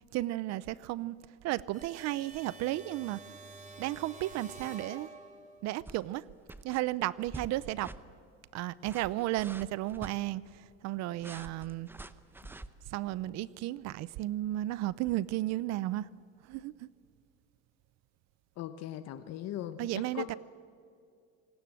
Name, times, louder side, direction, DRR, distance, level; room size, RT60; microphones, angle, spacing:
voice 1, 0.1-1.2 1.4-3.2 3.8-5.1 5.6-6.2 6.6-7.9 8.5-10.4 10.8-11.9 12.9-16.1 16.5-16.9 19.8-20.4, right 16 dB, 65° right, 20 dB, 0.7 m, -33 dB
sound 1, 1.7-5.6, right 3 dB, 25° right, 3.7 m, -49 dB
sound 2, 5.8-6.2 6.5-6.8 7.3-7.5 7.8-8.0 8.7-10.1 11.2-12.7, right 2 dB, 5° right, 0.9 m, -46 dB
voice 2, 18.6-20.4, left 11 dB, 60° left, 11 dB, 1.1 m, -39 dB
26.5 x 19.5 x 7.7 m, 2.4 s
cardioid pair, 120°, 29 cm